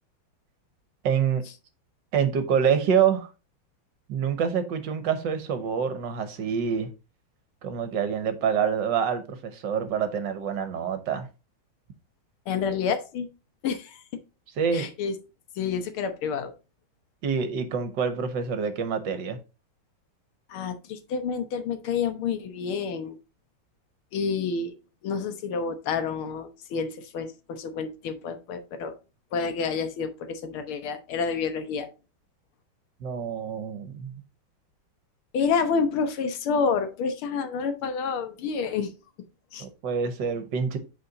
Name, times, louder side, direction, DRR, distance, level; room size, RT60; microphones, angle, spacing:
voice 1, 1.0-1.4 2.1-3.3 4.1-6.9 7.6-11.3 14.6-14.9 17.2-19.4 33.0-34.1 39.6-40.8, right 7 dB, 65° right, 1.5 m, -26 dB
voice 2, 12.5-13.3 13.6-14.0 14.7-15.1 15.6-16.5 20.5-23.2 24.1-24.7 25.0-28.9 29.3-31.9 35.3-38.9 39.5-39.7, left 5 dB, 85° left, 1.8 m, -29 dB
8.1 x 4.3 x 3.9 m
omnidirectional pair, 2.3 m